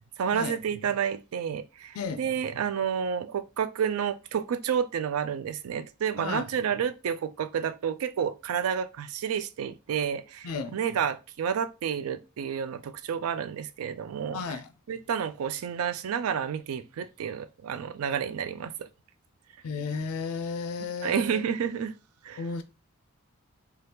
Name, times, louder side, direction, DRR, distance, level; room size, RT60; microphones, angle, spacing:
voice 1, 0.2-14.4 14.9-18.9 21.0-21.9 22.2-22.4, right 7 dB, 80° right, 0.3 m, -30 dB
voice 2, 10.4-10.8 14.3-14.7 19.6-21.4 22.4-22.6, left 5 dB, 80° left, 0.4 m, -33 dB
2.8 x 2.3 x 3.3 m
head